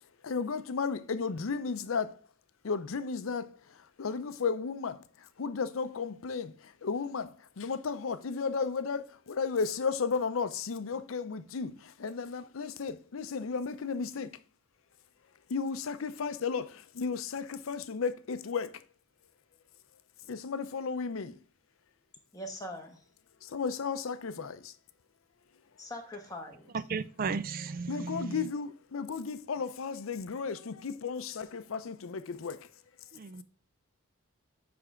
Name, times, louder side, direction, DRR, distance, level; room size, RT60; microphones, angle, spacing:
voice 1, 0.2-2.1 2.6-3.5 4.0-5.0 5.4-14.3 15.5-18.7 20.3-21.4 23.4-24.7 27.9-32.6, left 5 dB, 75° left, 0.5 m, -34 dB
voice 2, 22.3-23.0 25.8-26.7, left 1 dB, 15° left, 1.1 m, -42 dB
voice 3, 26.7-28.4 33.1-33.4, right 5 dB, 40° right, 0.4 m, -35 dB
9.5 x 3.4 x 3.7 m
head